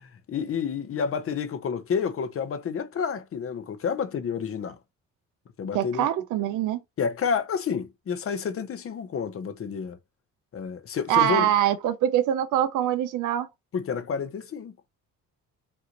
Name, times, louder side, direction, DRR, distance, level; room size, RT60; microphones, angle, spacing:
voice 1, 0.3-4.8 5.6-6.1 7.0-10.0 10.5-11.5 13.7-14.7, left 6 dB, 50° left, 0.8 m, -29 dB
voice 2, 5.7-6.8 11.1-13.5, right 11 dB, 90° right, 0.6 m, -24 dB
5.5 x 2.6 x 3.0 m
cardioid pair, 90°, 30 cm